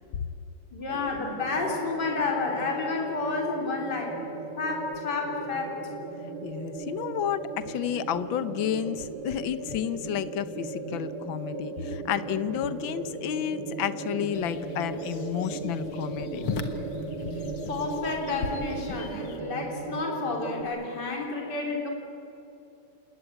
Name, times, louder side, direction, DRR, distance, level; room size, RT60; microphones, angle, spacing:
voice 1, 0.7-4.2 4.6-5.8 17.7-21.9, left 3 dB, 50° left, 1 dB, 4.0 m, -30 dB
sound 1, 0.9-20.6, right 3 dB, 85° right, 3.4 m, -37 dB
voice 2, 6.4-16.5, left 10 dB, 70° left, 13 dB, 1.7 m, -31 dB
sound 2, 14.3-19.4, left 5 dB, 90° left, 2.3 m, -38 dB
28.0 x 20.0 x 9.3 m, 2.8 s
omnidirectional pair, 2.4 m